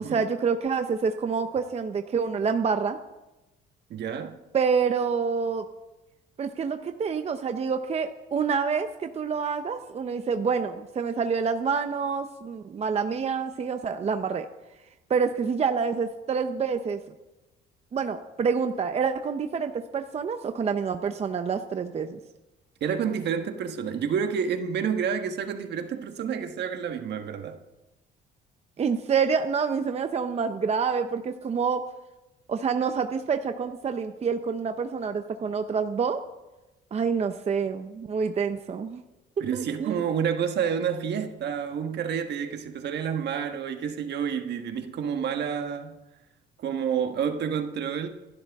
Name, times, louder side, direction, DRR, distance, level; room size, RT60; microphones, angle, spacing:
voice 1, 0.0-3.0 4.5-5.7 6.4-14.5 15.1-17.0 17.9-22.2 28.8-31.8 32.5-36.2 36.9-39.0 39.5-40.0, right 6 dB, 35° right, 0.7 m, -27 dB
voice 2, 3.9-4.4 22.8-27.6 39.4-46.0 46.6-48.1, right 7 dB, 60° right, 1.4 m, -29 dB
26.5 x 11.5 x 3.6 m
cardioid pair, 125°, 20 cm